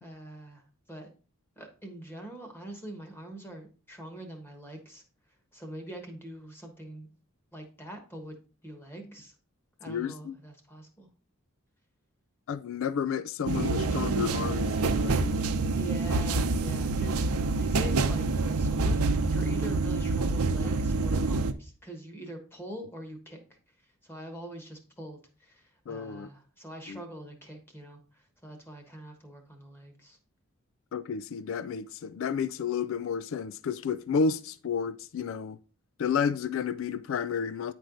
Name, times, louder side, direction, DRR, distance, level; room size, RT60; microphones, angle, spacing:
voice 1, 0.0-0.6 0.9-1.1 1.6-5.0 5.5-7.1 7.5-8.3 8.6-9.3 9.8-11.1 15.7-17.2 17.6-23.4 24.1-25.2 25.9-28.0 28.4-30.2, right 1 dB, 10° left, 1.3 m, -43 dB
voice 2, 9.9-10.4 12.5-15.4 25.9-26.3 26.9-27.0 30.9-35.6 36.0-37.7, left 6 dB, 60° left, 0.3 m, -31 dB
sound 1, 13.5-21.5, right 3 dB, 85° right, 0.6 m, -27 dB
9.5 x 4.5 x 3.9 m
head